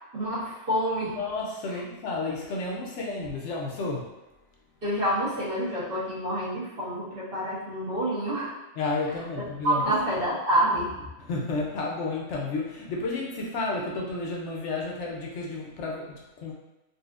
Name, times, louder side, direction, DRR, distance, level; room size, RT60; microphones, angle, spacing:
voice 1, 0.1-1.1 4.8-8.5 9.6-11.1, equal, 50° right, -9 dB, 1.3 m, -27 dB
voice 2, 1.2-4.1 8.8-9.8 11.2-16.5, left 3 dB, 75° left, -2 dB, 0.9 m, -31 dB
3.9 x 2.4 x 2.4 m, 1.0 s
omnidirectional pair, 1.2 m